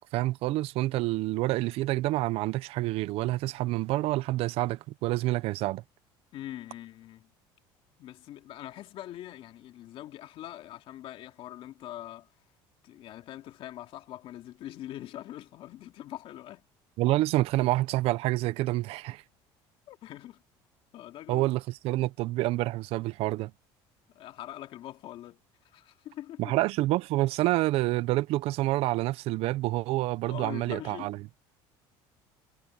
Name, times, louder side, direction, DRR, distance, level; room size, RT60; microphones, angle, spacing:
voice 1, 0.1-5.8 17.0-19.2 21.3-23.5 26.4-31.2, right 17 dB, 65° right, 0.7 m, -28 dB
voice 2, 6.3-7.3 8.0-12.3 12.8-16.6 19.9-20.4 20.9-21.5 24.1-26.6 30.2-31.2, left 13 dB, 55° left, 2.4 m, -43 dB
cardioid pair, 120°, 11 cm